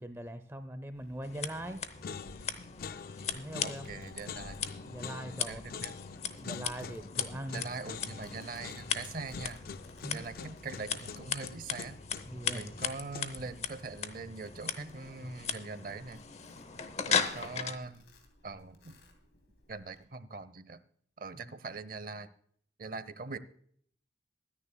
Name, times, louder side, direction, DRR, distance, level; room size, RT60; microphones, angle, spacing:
voice 1, 0.0-1.8 3.3-3.9 4.8-5.6 6.4-7.6 10.0-10.3 12.1-12.7 21.3-21.5, right 1 dB, 15° right, 10 dB, 0.6 m, -41 dB
Domestic sounds home sounds, 0.9-20.0, left 1 dB, 80° left, 3.0 m, -58 dB
Scissors, 1.2-17.8, left 6 dB, 40° left, 0.8 m, -38 dB
sound 1, 1.3-1.7 2.0-13.5, left 6 dB, 55° left, 0.4 m, -45 dB
voice 2, 3.6-4.6 5.5-5.9 7.5-9.6 10.1-12.0 12.5-16.2 17.1-18.1 18.4-19.0 19.7-20.8 21.2-22.3 22.8-23.4, right 3 dB, 50° right, 15 dB, 0.7 m, -42 dB
23.5 x 9.9 x 2.3 m, 0.63 s
head